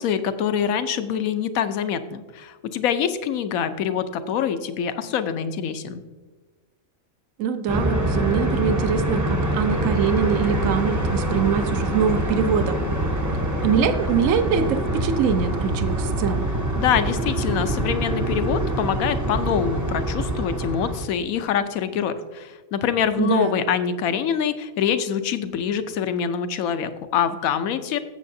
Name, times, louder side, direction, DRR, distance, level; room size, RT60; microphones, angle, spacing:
voice 1, 0.0-6.0 16.8-28.0, left 8 dB, 80° left, 10 dB, 1.1 m, -25 dB
voice 2, 7.4-12.8 13.6-16.5 23.2-23.6, right 7 dB, 70° right, 9 dB, 1.0 m, -23 dB
sound 1, 7.7-21.1, right 1 dB, 20° right, 0.5 m, -25 dB
13.5 x 7.6 x 2.7 m, 1.3 s
omnidirectional pair, 1.4 m